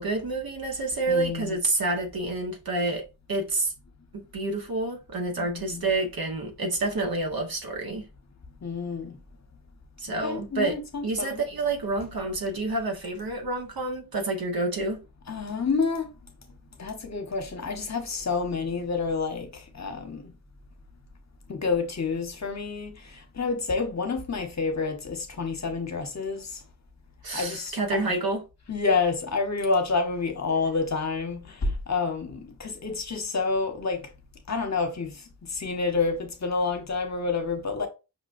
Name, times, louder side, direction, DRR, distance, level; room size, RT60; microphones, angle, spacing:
voice 1, 0.0-3.7 4.1-8.1 10.0-10.8 11.0-15.0 27.2-28.4, right 2 dB, 75° right, 1.0 m, -28 dB
voice 2, 1.1-1.6 5.4-5.9 8.6-9.1 10.1-11.4 15.3-16.1 16.8-20.3 21.5-26.6 27.3-28.1 28.7-34.1 34.5-37.9, left 4 dB, 50° left, 0.9 m, -29 dB
5.6 x 2.2 x 2.5 m
wide cardioid pair, 70°, 36 cm